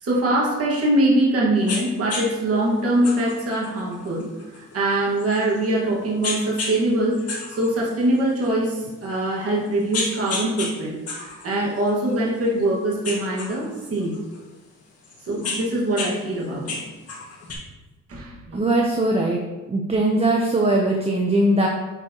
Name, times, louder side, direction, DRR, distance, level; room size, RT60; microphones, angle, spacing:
voice 1, 0.0-4.3 4.5-14.1 15.2-16.8 18.1-18.6, right 1 dB, 50° right, -4 dB, 1.8 m, -23 dB
sound 1, 1.7-1.8 2.1-2.3 3.0-5.7 6.2-6.8 7.1-8.5 9.0-9.1 9.7-10.7 11.1-12.6 13.0-14.4 15.0-16.1 16.4-17.5, left 3 dB, 55° left, 1.7 m, -31 dB
voice 2, 18.5-19.4 19.7-21.7, right 1 dB, 20° right, -1 dB, 0.8 m, -20 dB
8.8 x 4.3 x 3.0 m, 1.2 s
cardioid pair, 90°, 30 cm